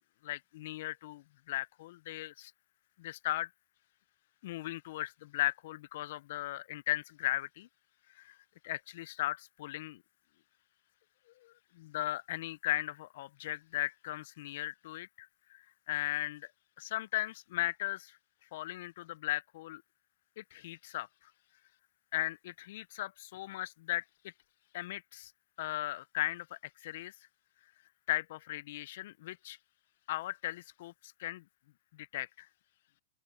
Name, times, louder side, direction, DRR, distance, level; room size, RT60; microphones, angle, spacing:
voice 1, 0.2-2.5 3.0-3.5 4.4-7.7 8.2-8.4 8.6-10.0 11.4-16.5 16.8-18.2 18.5-19.8 20.4-21.1 22.1-24.0 24.7-25.3 25.6-27.1 28.1-29.6 30.1-31.4 31.9-32.5, left 16 dB, 60° left, 0.6 m, -37 dB
open air
hypercardioid pair, 120°, 0 cm